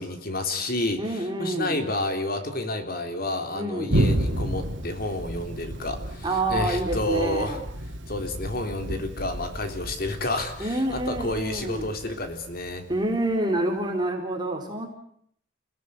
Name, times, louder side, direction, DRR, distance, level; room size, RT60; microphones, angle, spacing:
voice 1, 0.0-7.6 8.1-12.8, left 1 dB, 50° left, 7 dB, 3.6 m, -30 dB
voice 2, 1.0-1.8 3.5-4.0 6.2-7.6 10.6-11.9 12.9-14.9, right 1 dB, 25° right, 2 dB, 4.5 m, -27 dB
Thunder, 3.9-13.3, right 1 dB, 85° right, 2.8 m, -31 dB
29.0 x 17.5 x 9.9 m, 0.68 s
head